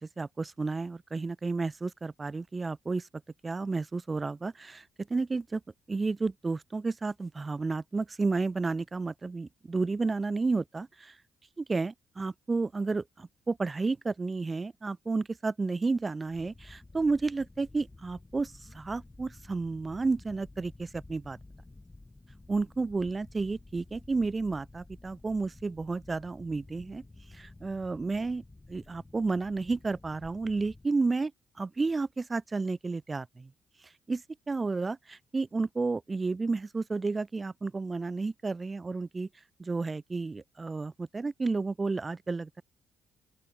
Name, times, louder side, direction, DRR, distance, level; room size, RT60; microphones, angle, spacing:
voice 1, 0.2-3.1 3.4-4.8 5.1-5.6 5.9-11.2 11.6-21.4 22.5-27.0 27.3-28.4 28.7-31.3 31.6-33.5 34.1-39.3 39.6-42.6, right 3 dB, 25° right, 1.5 m, -31 dB
sound 1, 16.3-30.9, left 2 dB, 15° left, 6.1 m, -52 dB
open air
cardioid pair, 90°, 0 cm